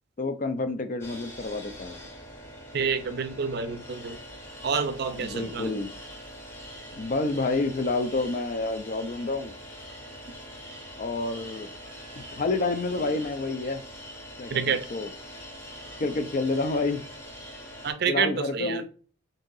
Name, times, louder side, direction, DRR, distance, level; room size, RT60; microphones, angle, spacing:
voice 1, 0.2-2.1 5.2-5.9 6.9-9.5 11.0-11.7 12.2-13.8 14.4-15.1 16.0-17.0 18.1-18.9, left 3 dB, 40° left, 0.4 m, -29 dB
sound 1, 1.0-17.9, equal, 10° left, 0.7 m, -43 dB
voice 2, 2.7-4.2 4.6-5.7 14.5-14.8 17.8-18.8, right 6 dB, 50° right, 0.5 m, -28 dB
3.6 x 2.7 x 3.9 m
head